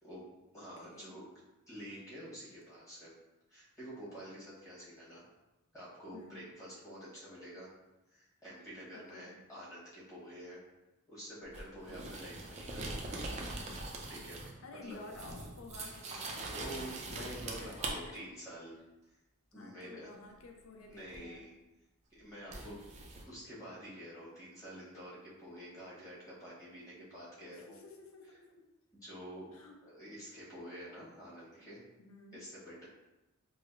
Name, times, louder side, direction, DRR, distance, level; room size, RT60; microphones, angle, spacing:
voice 1, 0.0-1.3 1.7-3.1 3.5-5.2 5.7-7.7 8.1-10.6 11.1-14.5 14.8-15.0 16.5-18.8 19.5-20.1 20.9-21.5 22.1-23.0 23.3-27.8 28.9-29.5 29.8-31.8 32.3-32.9, equal, 15° left, -9 dB, 1.1 m, -48 dB
voice 2, 0.6-1.2 6.1-6.5 8.9-9.4 11.9-12.4 14.6-16.5 17.3-18.2 19.5-21.4 27.5-28.7 29.5-29.8 32.0-32.4, left 3 dB, 70° left, 2 dB, 0.5 m, -53 dB
sound 1, 11.5-14.6 14.9-17.9 21.1-21.2 22.5-23.2, right 2 dB, 30° right, 0.4 m, -42 dB
4.9 x 2.0 x 2.5 m, 1.0 s
head